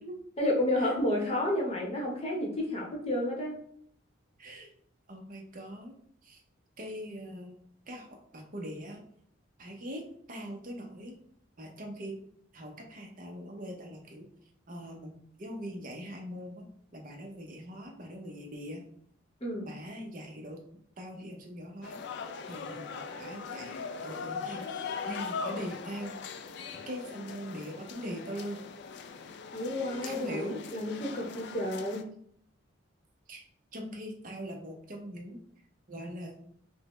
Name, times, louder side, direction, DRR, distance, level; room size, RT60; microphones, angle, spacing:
voice 1, 0.4-3.5 19.4-19.7 29.5-32.0, left 1 dB, 30° left, -2 dB, 0.8 m, -31 dB
voice 2, 4.4-4.7 5.1-5.9 6.2-6.4 6.8-7.6 7.9-8.1 8.3-9.0 9.6-10.0 10.3-11.2 11.6-12.2 12.5-14.3 14.7-16.6 16.9-18.8 19.6-20.6 21.0-22.0 22.5-24.7 25.0-26.2 26.9-28.6 30.0-30.6 33.3-33.4 33.7-35.4 35.9-36.3, equal, 40° right, 2 dB, 0.6 m, -41 dB
sound 1, 21.8-32.0, left 5 dB, 55° left, 0.3 m, -40 dB
5.3 x 2.1 x 3.0 m, 0.65 s
head